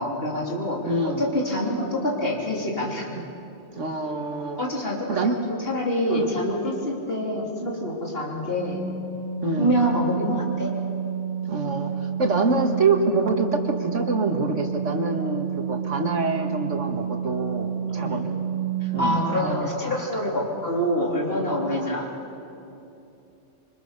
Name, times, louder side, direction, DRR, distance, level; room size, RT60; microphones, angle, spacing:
voice 1, 0.0-0.8 1.0-3.1 4.6-8.8 9.6-10.7 17.9-18.3 18.8-22.1, equal, 50° left, -2 dB, 3.7 m, -26 dB
voice 2, 0.9-1.2 3.2-3.3 3.8-4.6 5.1-5.4 6.1-6.3 9.4-9.7 11.5-11.9 12.2-18.4 18.9-20.0 21.6-21.9, right 3 dB, 85° right, 5 dB, 2.1 m, -26 dB
Organ, 8.5-19.1, right 7 dB, 80° left, 3.3 m, -30 dB
27.0 x 24.0 x 6.7 m, 2.9 s
omnidirectional pair, 1.2 m